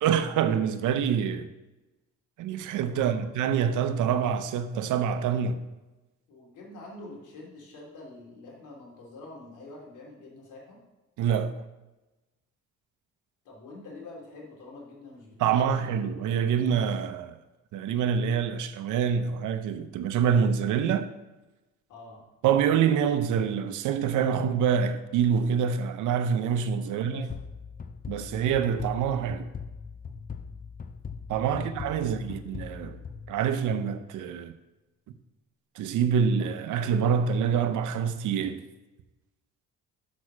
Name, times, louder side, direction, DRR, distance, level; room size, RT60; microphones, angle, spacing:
voice 1, 0.0-1.5 2.4-5.6 11.2-11.6 15.4-17.4 17.7-21.1 22.4-27.3 28.1-29.5 31.3-33.0 33.3-34.5 35.8-38.6, right 7 dB, 85° right, 0.7 m, -26 dB
voice 2, 6.3-10.8 13.4-15.8 21.9-22.2 26.8-27.3 31.5-31.7 31.9-32.3, left 2 dB, 85° left, 2.9 m, -46 dB
sound 1, 27.3-33.9, left 6 dB, 30° left, 0.6 m, -41 dB
6.3 x 6.1 x 6.1 m
cardioid pair, 90°, 30 cm